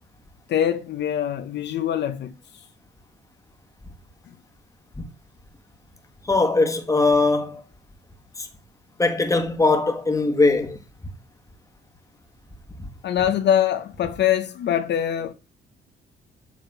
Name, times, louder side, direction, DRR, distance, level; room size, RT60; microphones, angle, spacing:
voice 1, 0.5-2.7 13.0-15.3, left 10 dB, 60° left, 0.6 m, -23 dB
voice 2, 6.3-7.6 8.4-8.5 9.0-10.8, left 3 dB, 15° left, 1.4 m, -20 dB
7.5 x 3.6 x 5.8 m
cardioid pair, 90°, 20 cm